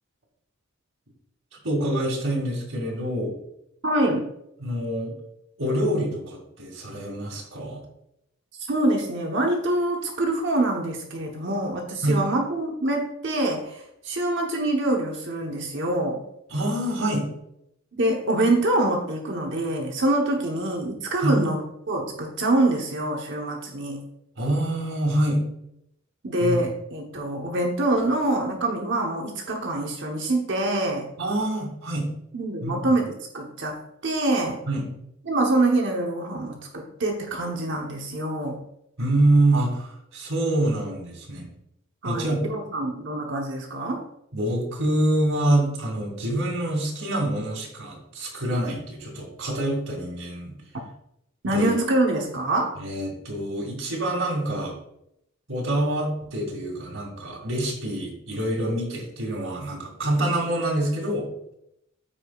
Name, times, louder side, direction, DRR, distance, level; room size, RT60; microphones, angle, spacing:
voice 1, 1.6-3.3 4.6-5.1 5.6-7.8 12.0-12.2 16.5-17.3 21.2-21.4 24.4-25.4 26.4-26.6 31.2-32.1 32.6-32.8 34.7-34.9 39.0-41.5 42.0-42.4 44.3-50.5 51.4-51.7 52.8-54.8 55.5-61.3, right 1 dB, 90° right, -2 dB, 2.6 m, -26 dB
voice 2, 3.8-4.2 8.7-16.2 17.9-24.0 26.2-31.1 32.3-34.6 35.3-38.6 42.0-44.0 51.4-52.7, right 2 dB, 60° right, 1 dB, 1.1 m, -25 dB
14.5 x 4.8 x 2.4 m, 0.78 s
head